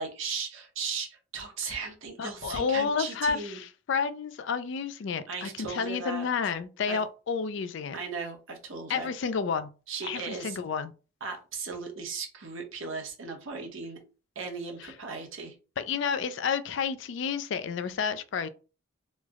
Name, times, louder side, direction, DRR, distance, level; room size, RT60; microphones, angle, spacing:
voice 1, 0.0-3.6 5.3-6.3 6.9-7.0 7.9-9.1 9.9-10.6 11.2-14.0 14.4-15.5, right 5 dB, 65° right, 0.8 m, -37 dB
voice 2, 2.2-8.0 8.9-9.7 10.0-10.9 15.8-18.5, left 6 dB, 60° left, 0.3 m, -30 dB
3.1 x 2.0 x 3.5 m
head